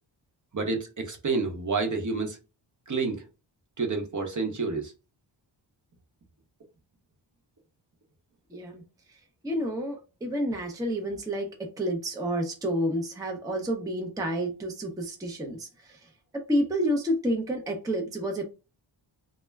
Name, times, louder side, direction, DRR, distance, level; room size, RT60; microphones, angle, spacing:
voice 1, 0.5-2.4 2.9-3.2 3.8-4.9, right 4 dB, 40° right, 0.7 m, -29 dB
voice 2, 8.5-8.8 9.1-9.2 9.4-18.4, equal, 10° right, 0.5 m, -30 dB
2.2 x 2.0 x 3.3 m
wide cardioid pair, 80°, 47 cm